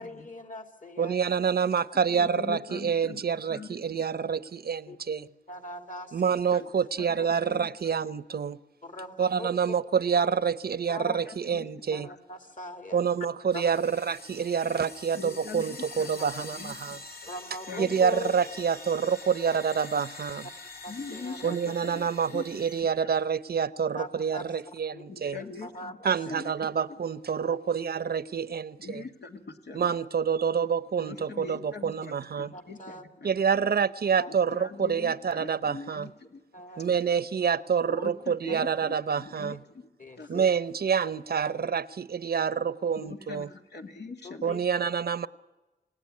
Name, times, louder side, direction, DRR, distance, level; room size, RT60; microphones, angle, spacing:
voice 1, 0.0-1.3 4.9-5.0 5.5-6.4 7.2-7.3 8.8-9.5 10.1-10.2 10.9-11.2 11.9-13.0 13.5-13.7 17.2-18.4 20.8-21.6 23.9-25.0 25.4-26.1 27.5-27.6 32.5-33.1 34.2-34.3 36.5-36.9 40.0-40.5 44.2-44.6, left 1 dB, 50° left, 2.8 m, -41 dB
voice 2, 1.0-5.3 6.1-8.6 9.2-12.1 12.9-17.0 17.8-20.5 21.4-25.4 26.0-29.1 29.7-32.5 33.2-36.1 36.8-39.6 40.3-43.5 44.4-45.3, right 7 dB, 65° right, 0.7 m, -27 dB
voice 3, 2.1-3.2 3.5-3.7 6.5-6.7 7.0-7.7 11.0-11.7 15.2-15.8 16.3-16.7 17.7-18.0 20.9-22.4 23.0-23.1 25.1-26.0 26.3-26.5 28.8-29.8 31.0-31.9 32.4-33.0 34.5-36.4 37.9-38.1 38.4-39.6 40.2-40.4 43.0-43.4 43.7-44.5, left 4 dB, 85° left, 2.0 m, -42 dB
sound 1, 13.5-22.8, left 3 dB, 65° left, 6.5 m, -45 dB
28.5 x 17.0 x 9.6 m
wide cardioid pair, 70°, 17 cm